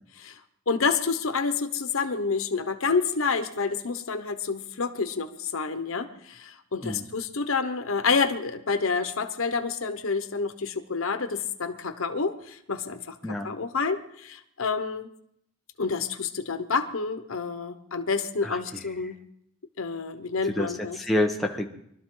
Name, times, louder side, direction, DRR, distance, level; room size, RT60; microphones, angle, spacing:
voice 1, 0.7-13.1 13.4-15.1 15.8-19.2 19.8-21.0, left 4 dB, 90° left, 8 dB, 1.1 m, -28 dB
voice 2, 18.4-19.0 20.4-21.7, left 1 dB, ahead, 0 dB, 1.3 m, -28 dB
24.0 x 12.5 x 3.9 m, 0.74 s
head